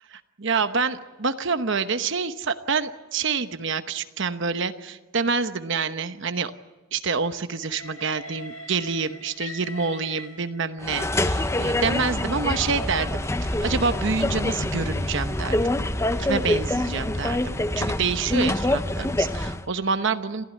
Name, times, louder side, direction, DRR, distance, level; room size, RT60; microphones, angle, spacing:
voice 1, 0.1-6.5 6.9-15.7 16.2-20.4, right 5 dB, 55° right, 10 dB, 1.0 m, -27 dB
Train, 7.6-11.0 11.8-17.1, left 2 dB, 65° left, 2.2 m, -45 dB
sound 1, 10.8-19.7, left 1 dB, 15° left, 0.7 m, -25 dB
27.5 x 15.5 x 9.4 m, 1.2 s
head